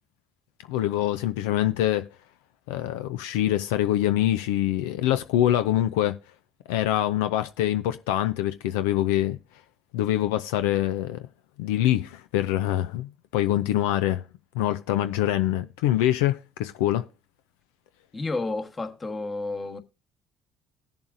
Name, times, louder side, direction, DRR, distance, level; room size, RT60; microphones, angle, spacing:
voice 1, 0.7-2.0 2.7-6.1 6.7-9.4 9.9-11.3 11.6-14.2 14.5-17.1, left 13 dB, 90° left, 0.4 m, -24 dB
voice 2, 18.1-19.8, left 3 dB, 30° left, 1.3 m, -31 dB
18.5 x 7.0 x 2.6 m
supercardioid pair, 70°, 0 cm